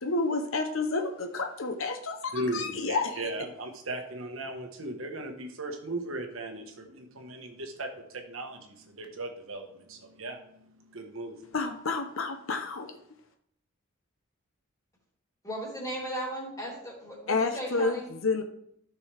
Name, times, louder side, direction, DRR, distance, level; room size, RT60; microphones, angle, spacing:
voice 1, 0.0-3.3 11.5-13.0 17.3-18.4, left 3 dB, 70° left, 6 dB, 0.9 m, -30 dB
voice 2, 2.3-11.5, right 1 dB, 70° right, 4 dB, 1.4 m, -37 dB
voice 3, 15.4-18.1, equal, 15° left, -4 dB, 3.1 m, -36 dB
13.5 x 6.0 x 3.5 m, 0.71 s
head